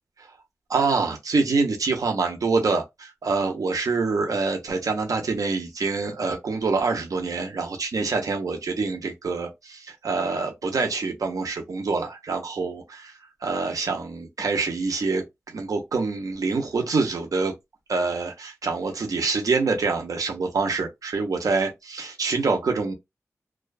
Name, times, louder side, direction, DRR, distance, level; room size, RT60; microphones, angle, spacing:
voice 1, 0.7-13.1 13.4-17.5 17.9-22.9, right 4 dB, 75° right, 0.7 m, -26 dB
2.4 x 2.2 x 2.3 m
wide cardioid pair, 70°, 6 cm